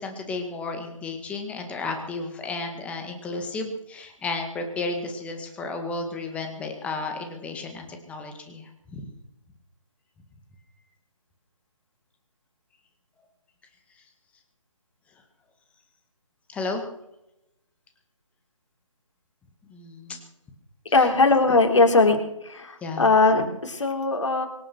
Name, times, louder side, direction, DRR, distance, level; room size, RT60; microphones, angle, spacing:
voice 1, 0.0-9.1 16.5-16.8 19.7-20.2 22.8-23.0, left 3 dB, 5° left, 5 dB, 1.9 m, -33 dB
voice 2, 20.9-22.2 22.4-24.5, left 3 dB, 65° left, 4 dB, 3.8 m, -20 dB
24.5 x 9.1 x 6.2 m, 0.86 s
figure-of-eight pair, 150°, 17 cm